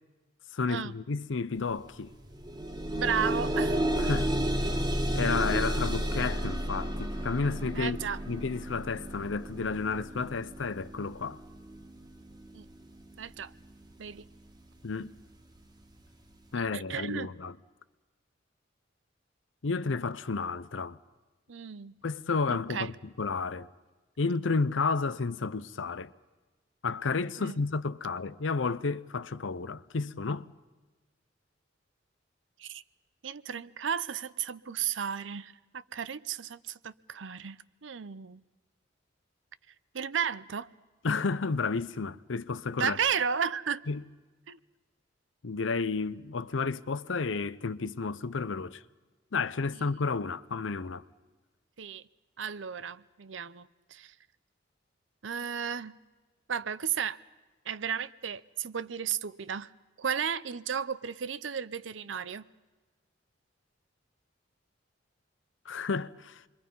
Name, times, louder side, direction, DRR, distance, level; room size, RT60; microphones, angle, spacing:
voice 1, 0.5-2.1 4.0-4.3 5.1-8.0 8.3-11.4 14.8-15.1 16.5-17.6 19.6-21.0 22.0-23.7 24.2-26.1 26.8-30.5 41.0-43.0 43.9-44.0 45.4-48.8 49.3-51.0 65.7-66.4, left 4 dB, 90° left, 0.7 m, -31 dB
sound 1, 1.6-1.8 2.1-13.1 13.9-14.0 14.5-14.6, right 1 dB, 20° right, 1.6 m, -32 dB
voice 2, 2.9-3.8 7.7-8.2 12.5-12.7 13.2-13.5 14.0-14.2 16.6-17.3 21.5-21.9 22.5-22.9 27.4-27.6 32.6-32.8 33.2-38.4 39.9-40.7 42.8-43.8 44.5-44.6 49.7-49.9 51.8-52.0 52.4-54.1 55.2-56.0 56.5-57.2 57.7-59.7 60.0-62.5, right 7 dB, 80° right, 0.7 m, -34 dB
28.5 x 23.0 x 5.5 m
head